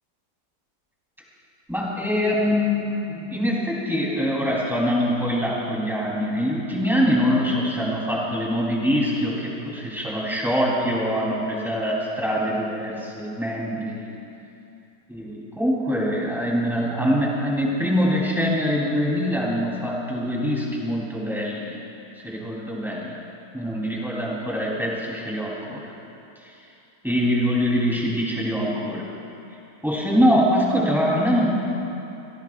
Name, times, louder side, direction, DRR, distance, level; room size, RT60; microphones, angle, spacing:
voice 1, 1.7-14.2 15.1-21.8 22.2-23.2 23.5-25.8 27.0-29.1 29.8-31.5, equal, ahead, -5 dB, 3.5 m, -24 dB
28.0 x 17.0 x 2.5 m, 2.8 s
omnidirectional pair, 1.8 m